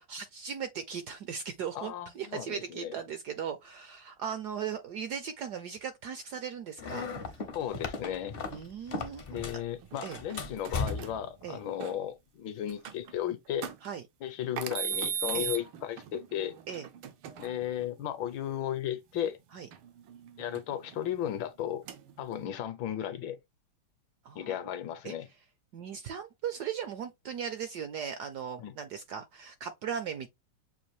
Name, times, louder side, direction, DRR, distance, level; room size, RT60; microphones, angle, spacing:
voice 1, 0.1-7.4 8.5-9.2 9.5-9.6 10.0-10.2 11.4-11.6 13.8-14.0 15.3-15.5 16.7-16.9 19.5-19.7 24.2-24.6 25.0-25.1 25.7-30.3, right 7 dB, 70° right, 0.9 m, -38 dB
voice 2, 1.7-2.9 7.5-8.4 9.3-13.7 14.2-16.6 17.4-19.4 20.4-21.8 22.2-23.4 24.3-25.3 28.6-28.7, left 10 dB, 75° left, 1.3 m, -35 dB
sound 1, 6.8-9.6 9.9-11.2, left 4 dB, 55° left, 0.6 m, -37 dB
sound 2, 9.8-12.0 12.7-13.1 13.6-13.9 14.6-17.9 19.7-21.4 21.9-22.5, right 9 dB, 85° right, 1.7 m, -38 dB
7.0 x 2.5 x 3.1 m
omnidirectional pair, 2.3 m